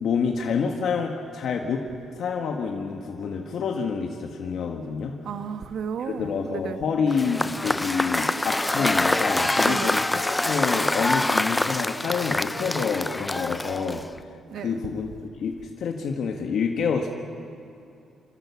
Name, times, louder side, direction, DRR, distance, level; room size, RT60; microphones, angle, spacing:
voice 1, 0.0-1.8 2.1-5.1 6.0-15.1 15.4-17.1, left 5 dB, 65° left, 2 dB, 1.5 m, -28 dB
voice 2, 5.2-6.8 9.6-10.0 14.5-14.8, right 7 dB, 70° right, 9 dB, 1.1 m, -33 dB
Cheering / Applause / Crowd, 7.1-14.2, left 1 dB, 10° left, 0.4 m, -25 dB
29.0 x 13.0 x 7.2 m, 2.7 s
cardioid pair, 100°, 0 cm